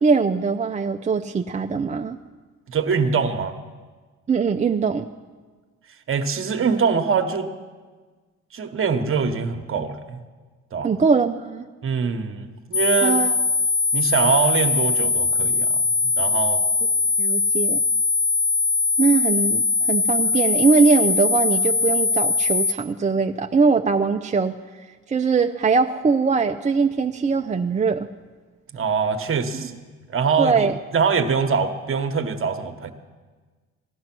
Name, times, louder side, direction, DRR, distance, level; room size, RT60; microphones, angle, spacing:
voice 1, 0.0-2.2 4.3-5.1 10.8-11.7 13.0-13.4 17.2-17.8 19.0-28.1 30.4-30.8, right 5 dB, 25° right, 4 dB, 0.5 m, -21 dB
voice 2, 2.7-3.6 6.1-7.5 8.5-10.2 10.7-10.9 11.8-13.2 13.9-15.8 16.2-16.6 28.7-29.7 30.1-30.7 30.9-32.9, right 5 dB, 45° right, 7 dB, 1.2 m, -23 dB
sound 1, 12.7-22.7, left 4 dB, 60° left, 2.0 m, -21 dB
16.0 x 11.0 x 6.1 m, 1.4 s
cardioid pair, 90°, 30 cm